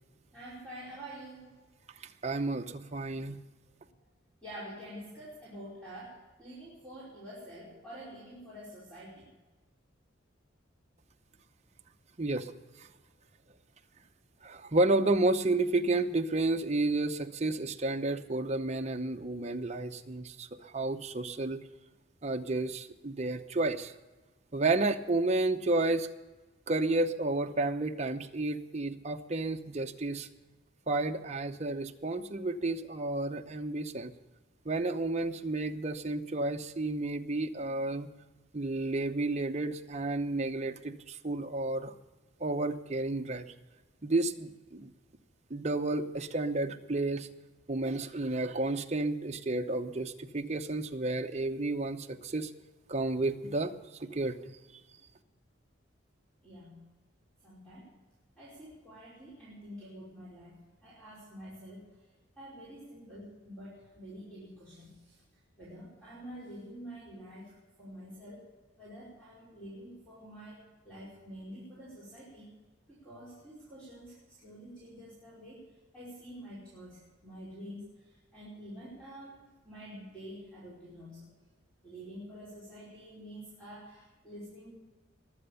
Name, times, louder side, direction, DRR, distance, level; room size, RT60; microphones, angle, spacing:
voice 1, 0.3-1.5 4.4-9.3 56.4-56.8 57.4-57.9 58.4-61.9 62.4-65.2 65.6-68.4 68.8-72.5 72.9-75.6 75.9-79.4 79.6-81.3 81.8-84.7, equal, 5° left, -10 dB, 5.2 m, -47 dB
voice 2, 2.2-3.4 12.2-12.5 12.8-12.9 14.4-21.6 22.2-23.9 24.5-26.1 26.7-30.3 30.9-34.1 34.7-38.1 38.5-41.9 42.4-43.5 44.0-44.9 45.5-47.3 47.7-52.5 52.9-53.7 54.0-54.6, right 2 dB, 35° right, 5 dB, 0.8 m, -31 dB
21.5 x 7.9 x 6.9 m, 1.2 s
head